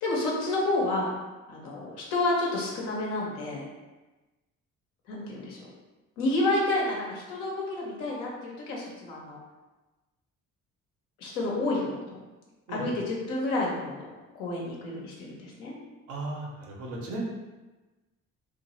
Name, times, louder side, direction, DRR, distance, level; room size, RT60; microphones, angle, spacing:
voice 1, 0.0-1.1 1.5-3.6 5.1-5.6 6.2-9.4 11.2-12.2 12.7-14.0 14.3-15.7, left 2 dB, 80° left, -3 dB, 0.8 m, -29 dB
voice 2, 16.1-17.2, right 2 dB, 85° right, -3 dB, 0.8 m, -36 dB
2.7 x 2.2 x 3.0 m, 1.1 s
hypercardioid pair, 45°, 38 cm